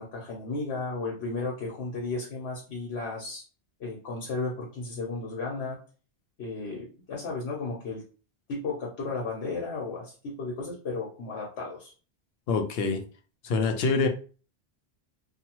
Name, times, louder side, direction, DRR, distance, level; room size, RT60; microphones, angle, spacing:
voice 1, 0.0-3.4 3.8-5.8 6.4-8.0 8.5-11.9, left 3 dB, 85° left, -2 dB, 1.1 m, -34 dB
voice 2, 12.5-13.0 13.4-14.1, left 4 dB, 70° left, 6 dB, 0.7 m, -25 dB
2.8 x 2.3 x 2.9 m, 0.37 s
omnidirectional pair, 1.1 m